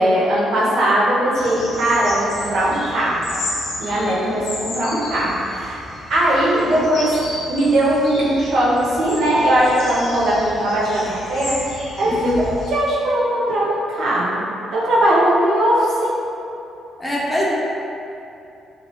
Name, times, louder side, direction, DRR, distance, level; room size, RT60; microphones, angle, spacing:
voice 1, 0.0-3.3 3.8-5.8 6.1-7.1 7.5-11.7 12.0-12.2 12.7-16.2, right 1 dB, 70° right, -6 dB, 0.8 m, -19 dB
sound 1, 1.3-12.7, left 2 dB, 75° left, 0.6 m, -33 dB
voice 2, 17.0-17.5, left 1 dB, 10° left, -5 dB, 0.6 m, -23 dB
3.0 x 2.5 x 3.0 m, 2.8 s
cardioid pair, 90°, 0 cm